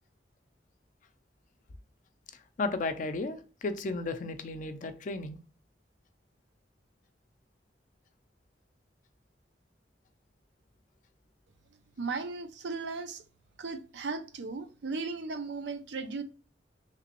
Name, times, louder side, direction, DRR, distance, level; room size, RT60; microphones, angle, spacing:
voice 1, 2.6-5.4, left 3 dB, 45° left, 0.4 m, -34 dB
voice 2, 12.0-13.2 13.6-16.2, right 4 dB, 75° right, 0.5 m, -36 dB
3.2 x 2.9 x 2.9 m
head